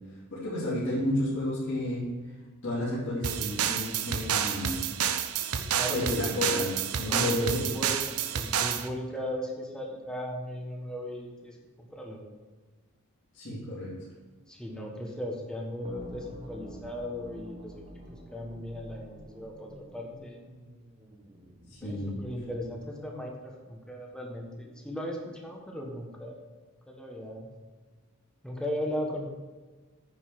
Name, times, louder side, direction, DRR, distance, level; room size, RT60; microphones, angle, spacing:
voice 1, 0.3-2.1 2.6-4.8 5.7-7.7 13.3-13.9 21.7-22.2, left 1 dB, 55° left, -12 dB, 3.3 m, -31 dB
sound 1, 3.2-8.9, right 8 dB, 75° right, 0.7 m, -30 dB
voice 2, 5.5-6.5 7.1-8.0 8.3-12.2 14.5-17.7 18.1-20.4 21.8-26.4 26.9-27.5 28.4-29.3, equal, 5° left, 0 dB, 1.3 m, -37 dB
sound 2, 15.8-22.8, equal, 25° right, 1.4 m, -48 dB
10.0 x 5.4 x 5.9 m, 1.4 s
head